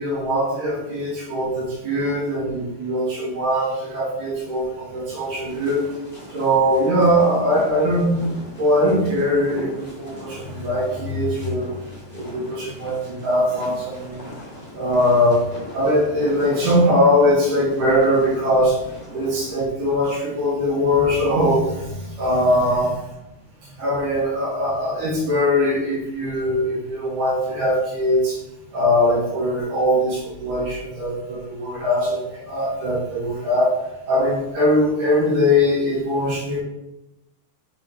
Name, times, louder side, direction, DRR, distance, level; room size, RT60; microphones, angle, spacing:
voice 1, 0.0-5.9 6.3-8.3 8.6-11.7 12.1-14.3 14.7-22.9 23.6-28.4 28.7-33.8 34.1-36.6, left 1 dB, 60° right, -6 dB, 2.5 m, -21 dB
sound 1, 5.5-19.7, equal, 25° left, 1.2 m, -40 dB
7.5 x 4.7 x 3.0 m, 0.95 s
omnidirectional pair, 4.7 m